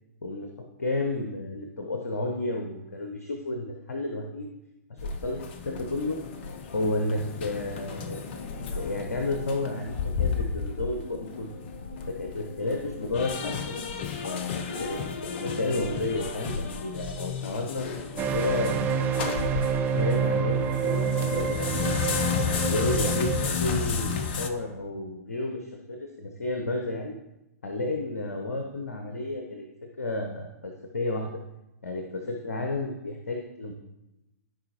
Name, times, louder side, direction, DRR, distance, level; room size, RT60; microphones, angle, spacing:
voice 1, 0.2-4.5 4.9-6.2 6.7-8.2 8.7-11.5 12.1-15.0 15.2-17.9 18.3-19.0 19.9-21.9 22.4-27.2 27.6-29.6 30.0-31.4 31.8-33.7, left 2 dB, 65° left, 3 dB, 0.9 m, -32 dB
sound 1, 5.0-20.2 20.6-24.5, left 5 dB, 40° left, 0.7 m, -32 dB
sound 2, 18.2-23.5, right 6 dB, 20° right, 0.7 m, -28 dB
14.0 x 4.9 x 2.9 m, 0.94 s
figure-of-eight pair, 115°, 9 cm